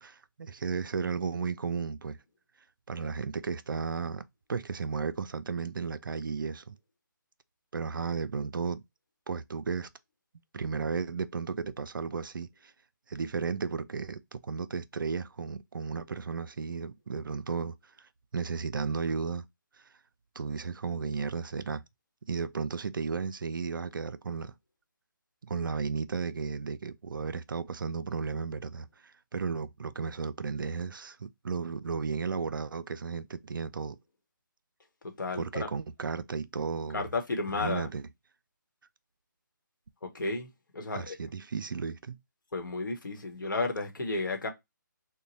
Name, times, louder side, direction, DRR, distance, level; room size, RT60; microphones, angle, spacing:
voice 1, 0.0-2.2 2.9-6.8 7.7-8.8 9.3-9.9 10.5-12.7 13.1-17.8 18.3-19.5 20.4-21.8 22.3-24.5 25.4-34.0 35.4-37.1 37.5-38.1 40.9-42.2, right 5 dB, 85° right, 0.4 m, -34 dB
voice 2, 35.2-35.7 36.9-37.9 40.0-40.5 40.7-41.2 42.5-44.5, left 3 dB, 75° left, 1.0 m, -32 dB
3.0 x 2.1 x 3.9 m
hypercardioid pair, 155°, 11 cm